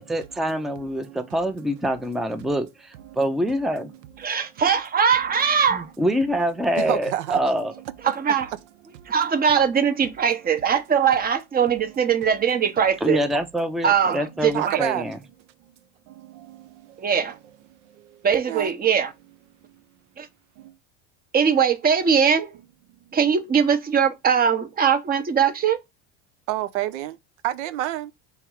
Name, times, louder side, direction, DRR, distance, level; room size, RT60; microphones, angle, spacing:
voice 1, 0.0-3.9 5.7-7.7 13.0-15.2, equal, ahead, 0.5 m, -25 dB
voice 2, 4.2-5.9 8.0-8.5 9.1-13.2 13.8-14.8 17.0-17.4 18.2-19.1 20.2-20.3 21.3-22.5 23.1-25.8, right 7 dB, 25° right, 0.8 m, -21 dB
voice 3, 6.8-7.4 14.1-14.2 14.5-15.0 18.5-18.7 26.5-27.1 27.4-28.1, right 13 dB, 85° right, 0.6 m, -27 dB
3.4 x 3.1 x 4.6 m
supercardioid pair, 105°, 35 cm